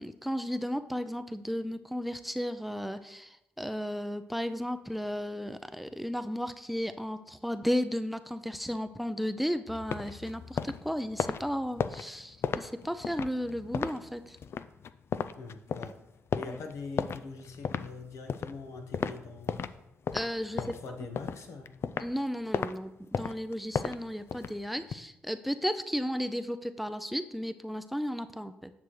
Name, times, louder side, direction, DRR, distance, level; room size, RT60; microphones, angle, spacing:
voice 1, 0.0-14.4 16.5-16.6 20.1-20.7 22.0-28.7, equal, ahead, 11 dB, 0.5 m, -34 dB
sound 1, 9.7-19.8 20.1-22.2 22.5-22.7 23.1-25.0, left 6 dB, 55° left, 0.4 m, -35 dB
voice 2, 15.4-16.0 16.3-19.7 20.5-21.7, left 4 dB, 75° left, 5 dB, 1.2 m, -43 dB
9.1 x 6.0 x 3.2 m, 0.87 s
supercardioid pair, 55°, 5 cm